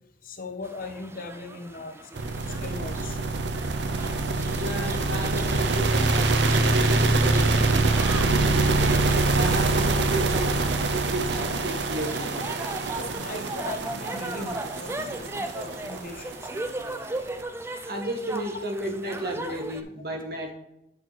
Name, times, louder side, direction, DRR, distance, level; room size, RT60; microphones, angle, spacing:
voice 1, 0.2-2.1 2.6-3.2 10.3-10.4 13.0-16.5 17.7-17.8, left 3 dB, 55° left, 4 dB, 1.2 m, -38 dB
sound 1, 0.6-19.8, right 2 dB, 15° right, 0.5 m, -38 dB
sound 2, 2.2-17.3, right 3 dB, 85° right, 0.8 m, -25 dB
voice 2, 4.5-8.9 9.3-10.5 11.1-12.3 17.8-20.5, right 1 dB, 60° right, 3 dB, 1.7 m, -33 dB
9.3 x 5.7 x 3.4 m, 0.83 s
head